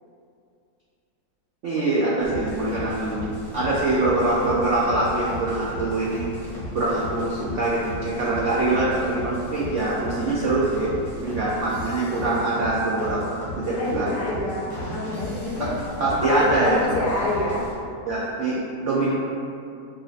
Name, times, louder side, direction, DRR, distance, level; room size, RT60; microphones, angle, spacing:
voice 1, 1.6-6.2 6.7-10.9 11.2-14.1 16.0-16.8 18.1-19.1, right 2 dB, 75° right, -6 dB, 0.6 m, -24 dB
sound 1, 2.2-17.7, left 1 dB, 20° right, 1.3 m, -35 dB
voice 2, 13.7-17.6, left 1 dB, 75° left, -5 dB, 1.3 m, -27 dB
6.0 x 2.7 x 2.4 m, 2.5 s
omnidirectional pair, 1.8 m